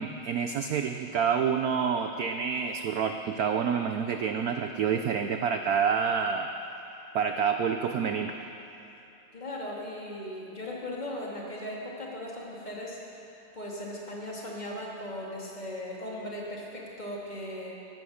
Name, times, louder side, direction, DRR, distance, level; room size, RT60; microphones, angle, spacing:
voice 1, 0.0-6.5 7.1-8.3, right 6 dB, 85° right, 6 dB, 0.8 m, -28 dB
voice 2, 9.3-13.0 13.5-17.7, left 1 dB, 20° left, -4 dB, 2.5 m, -38 dB
15.5 x 12.5 x 6.4 m, 2.9 s
omnidirectional pair, 2.3 m